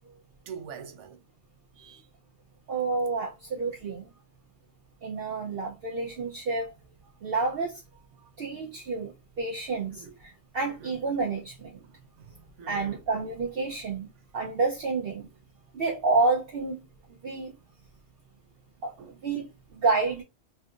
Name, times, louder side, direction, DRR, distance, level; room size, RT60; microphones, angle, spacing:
voice 1, 0.5-1.2 1.8-2.1 9.9-10.2 10.8-11.0 11.8-13.0 19.0-19.2, right 6 dB, 85° right, 1.0 m, -45 dB
voice 2, 2.7-4.1 5.0-6.7 7.2-7.8 8.4-9.1 9.4-11.7 12.7-14.1 14.3-15.3 15.7-16.8 17.2-17.5 18.8-18.9 19.2-19.5 19.7-20.2, right 3 dB, 55° right, 0.8 m, -29 dB
3.3 x 2.7 x 2.4 m
omnidirectional pair, 1.2 m